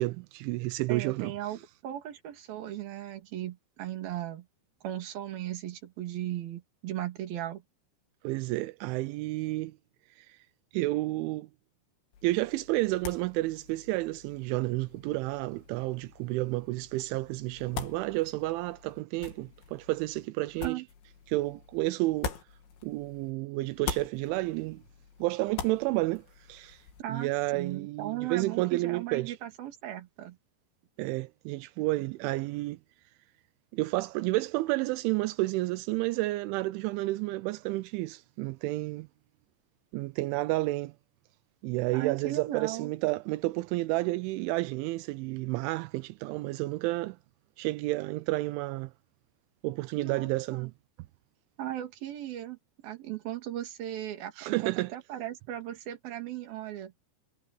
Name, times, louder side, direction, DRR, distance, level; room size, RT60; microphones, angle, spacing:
voice 1, 0.0-1.3 8.2-9.8 10.2-10.4 10.7-11.5 12.2-20.8 21.3-22.3 22.8-24.8 25.2-26.8 27.1-29.4 31.0-32.8 33.7-39.1 39.9-40.9 41.6-47.2 47.6-48.9 49.6-50.7 54.4-54.9, right 19 dB, 85° right, 3.1 m, -31 dB
voice 2, 0.9-4.5 4.8-7.6 20.6-20.9 27.0-30.4 41.9-42.9 50.0-50.7 51.6-52.6 52.8-56.9, right 13 dB, 55° right, 3.8 m, -37 dB
sound 1, 12.1-23.3 23.6-27.0, left 7 dB, 70° left, 4.7 m, -44 dB
omnidirectional pair, 5.5 m